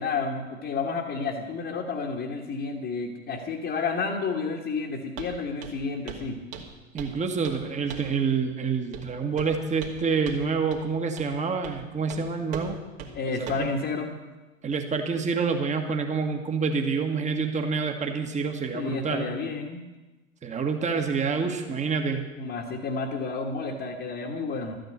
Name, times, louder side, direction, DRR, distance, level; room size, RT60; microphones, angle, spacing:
voice 1, 0.0-6.4 13.1-14.1 18.7-19.8 22.4-24.8, left 4 dB, 30° left, -2 dB, 1.7 m, -31 dB
Walk footsteps, 5.2-5.3 5.6-5.8 6.1-6.3 6.5-7.2 7.4-7.6 7.9-8.2 8.9-9.1 9.4-10.0 10.3-10.4 10.7-10.8 11.2-11.3 11.6-11.8 12.1-12.2 12.5-12.7 13.0-13.1 13.5-13.7, right 8 dB, 55° right, 2.4 m, -39 dB
voice 2, 6.9-12.8 13.3-13.7 14.6-19.3 20.4-22.3, right 5 dB, 20° right, 4 dB, 1.6 m, -27 dB
13.0 x 9.1 x 8.1 m, 1.1 s
figure-of-eight pair, 75°, 36 cm